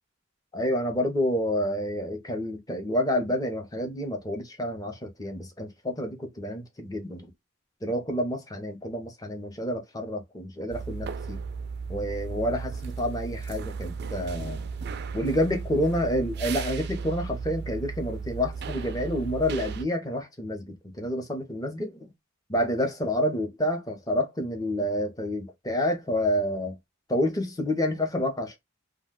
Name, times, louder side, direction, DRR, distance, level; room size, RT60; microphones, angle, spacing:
voice 1, 0.5-7.3 7.8-11.4 11.9-14.7 15.1-22.1 22.5-26.8 27.1-28.6, equal, 20° left, 0.7 m, -29 dB
sound 1, 10.7-19.8, right 5 dB, 55° right, 0.4 m, -35 dB
2.4 x 2.2 x 3.5 m
head